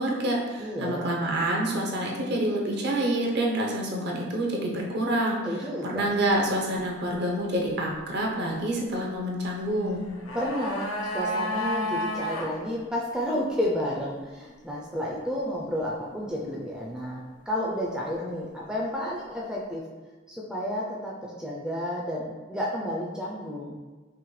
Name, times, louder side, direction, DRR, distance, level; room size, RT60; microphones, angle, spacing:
voice 1, 0.0-5.4 5.8-10.0, right 1 dB, 55° right, -1 dB, 0.7 m, -27 dB
voice 2, 0.6-1.1 5.4-6.1 10.3-19.9 20.3-23.8, equal, 5° right, -4 dB, 0.4 m, -31 dB
sound 1, 9.9-12.5 12.8-12.9, equal, 90° left, 0.6 m, -30 dB
5.6 x 2.2 x 3.1 m, 1.3 s
head